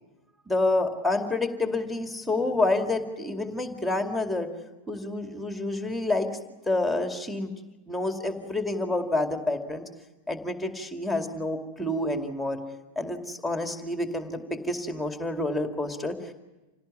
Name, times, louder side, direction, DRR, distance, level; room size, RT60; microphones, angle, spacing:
voice 1, 0.5-4.5 4.9-6.3 6.7-7.5 7.9-9.8 10.3-12.6 13.0-16.3, left 2 dB, ahead, 5 dB, 2.3 m, -28 dB
27.5 x 17.5 x 9.8 m, 1.1 s
figure-of-eight pair, 90°, 0 cm